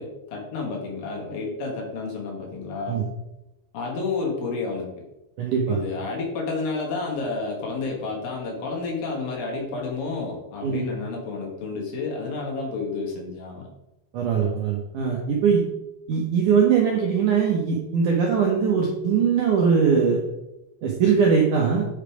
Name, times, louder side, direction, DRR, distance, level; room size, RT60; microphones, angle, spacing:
voice 1, 0.0-3.0 3.7-5.0 5.7-13.7, left 4 dB, 65° left, 0 dB, 2.9 m, -30 dB
voice 2, 5.4-5.8 10.6-10.8 14.1-15.6 16.1-20.2 20.8-21.9, right 6 dB, 75° right, -1 dB, 1.9 m, -21 dB
8.8 x 5.2 x 4.9 m, 0.92 s
omnidirectional pair, 5.0 m